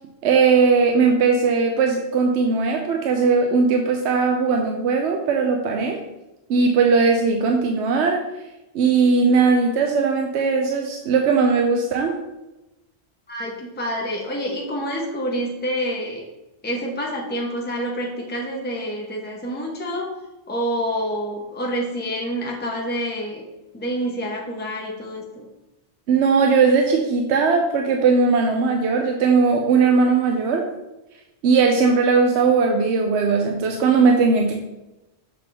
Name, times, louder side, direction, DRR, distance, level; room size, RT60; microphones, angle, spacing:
voice 1, 0.2-6.0 6.5-8.2 8.7-12.2 26.1-30.7 31.4-34.6, right 4 dB, 80° right, 3 dB, 0.9 m, -19 dB
voice 2, 13.3-16.2 16.6-20.1 20.5-23.4 23.7-25.5, equal, 10° left, -1 dB, 0.9 m, -27 dB
6.7 x 3.5 x 5.5 m, 0.99 s
omnidirectional pair, 1.1 m